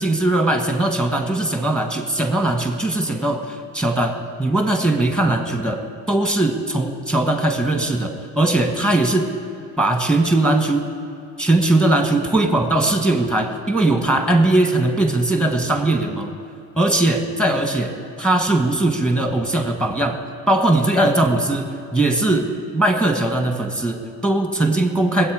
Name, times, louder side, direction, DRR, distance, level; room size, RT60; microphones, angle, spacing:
voice 1, 0.0-5.8 6.1-9.3 9.8-10.9 11.4-16.3 16.8-20.2 20.5-22.5 22.7-25.3, right 2 dB, 5° left, 4 dB, 1.4 m, -19 dB
21.0 x 8.4 x 4.9 m, 2.5 s
cardioid pair, 110°, 32 cm